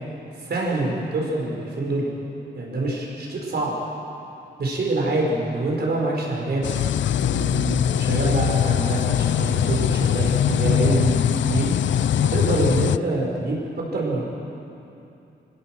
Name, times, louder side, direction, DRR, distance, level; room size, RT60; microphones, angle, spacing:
voice 1, 0.4-2.1 2.5-3.7 4.6-6.6 7.2-14.2, right 2 dB, 60° right, -1 dB, 5.1 m, -25 dB
sound 1, 6.6-13.0, left 10 dB, 85° left, 0.5 m, -22 dB
26.0 x 16.0 x 7.7 m, 2.8 s
wide cardioid pair, 170°, 19 cm